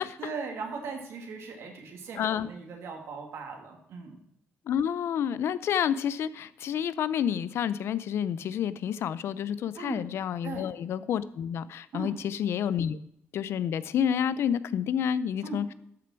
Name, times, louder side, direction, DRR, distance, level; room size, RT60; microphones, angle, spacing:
voice 1, 0.2-4.2 9.7-10.0 10.4-10.7 11.9-12.2 15.4-15.6, right 4 dB, 75° right, 3 dB, 2.5 m, -38 dB
voice 2, 2.2-2.5 4.7-13.0 13.3-15.7, left 9 dB, 70° left, 16 dB, 0.5 m, -29 dB
13.0 x 6.8 x 4.5 m, 0.75 s
cardioid pair, 130°, 4 cm